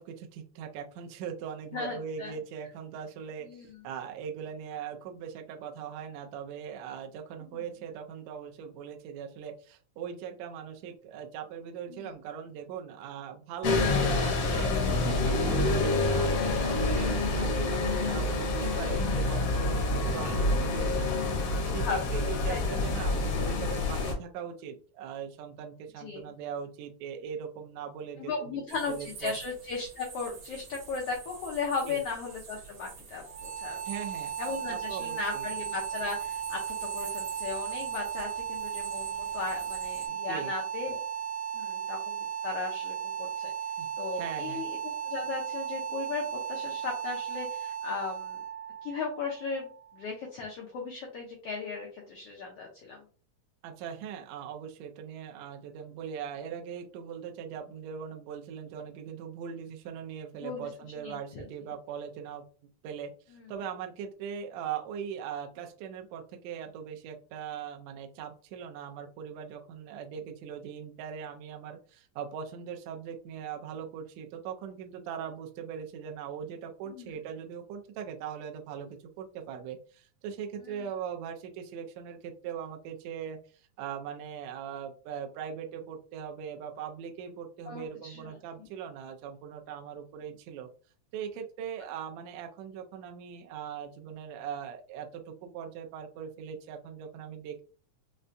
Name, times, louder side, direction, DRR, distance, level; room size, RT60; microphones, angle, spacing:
voice 1, 0.0-29.4 31.8-32.0 33.8-34.3 34.7-35.4 40.3-40.5 43.8-43.9 44.1-44.6 53.6-62.4 62.8-90.7 91.1-97.6, right 7 dB, 80° right, 3 dB, 1.6 m, -40 dB
voice 2, 1.7-2.3 3.4-3.8 7.5-7.6 11.9-12.1 20.2-20.3 21.6-22.0 22.5-23.0 26.0-26.2 28.2-33.8 34.4-41.0 41.5-43.5 44.0-48.4 48.8-53.0 60.4-60.7 61.0-61.7 63.3-63.5 76.9-77.1 80.6-80.9 87.7-88.7, left 4 dB, 85° left, -1 dB, 1.3 m, -37 dB
sound 1, 13.6-24.1, left 2 dB, 70° left, 1.5 m, -27 dB
sound 2, 28.7-40.1, right 5 dB, 60° right, 1.6 m, -47 dB
sound 3, 33.2-50.2, right 8 dB, 35° right, 0.5 m, -36 dB
5.2 x 2.2 x 2.5 m, 0.40 s
omnidirectional pair, 3.5 m